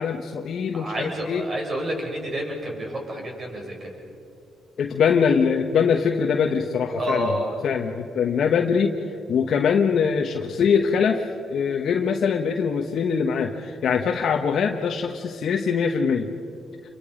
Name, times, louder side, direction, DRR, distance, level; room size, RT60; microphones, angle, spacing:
voice 1, 0.0-1.5 4.8-7.4 7.6-16.3, left 6 dB, 60° left, 2 dB, 1.2 m, -23 dB
voice 2, 0.7-3.9 7.0-7.5, right 1 dB, 40° right, 0 dB, 7.0 m, -29 dB
28.5 x 24.5 x 5.2 m, 2.8 s
cardioid pair, 90°, 0 cm